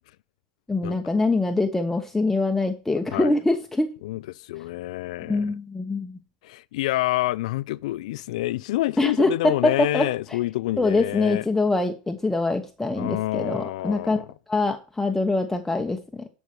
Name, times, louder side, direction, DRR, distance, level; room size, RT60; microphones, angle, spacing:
voice 1, 0.7-3.9 5.2-6.2 9.0-10.4 10.8-16.3, left 2 dB, 5° left, 1.0 m, -24 dB
voice 2, 4.0-5.5 6.4-11.5 13.0-14.3, left 17 dB, 70° left, 0.4 m, -28 dB
12.0 x 5.7 x 4.5 m
hypercardioid pair, 105°, 4 cm